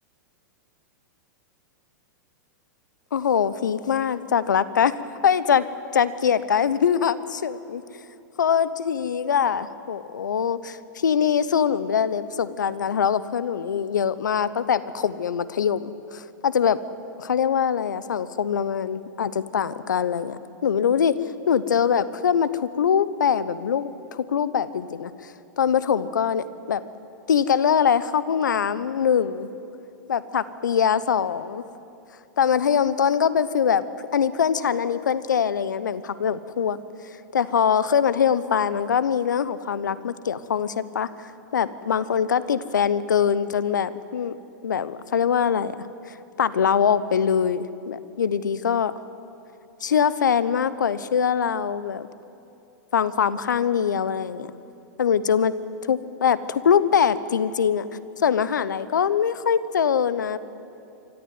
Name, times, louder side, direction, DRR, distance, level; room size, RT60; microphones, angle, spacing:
voice 1, 3.1-4.9 5.2-5.7 5.9-7.8 8.4-16.8 17.2-26.8 27.3-29.5 30.1-31.6 32.4-36.8 37.3-44.4 44.6-45.7 46.1-48.9 49.8-52.1 52.9-54.5 55.0-55.5 55.9-57.9 58.2-60.4, left 7 dB, 80° left, 16 dB, 1.0 m, -23 dB
25.0 x 14.5 x 9.5 m, 2.7 s
hypercardioid pair, 105°, 10 cm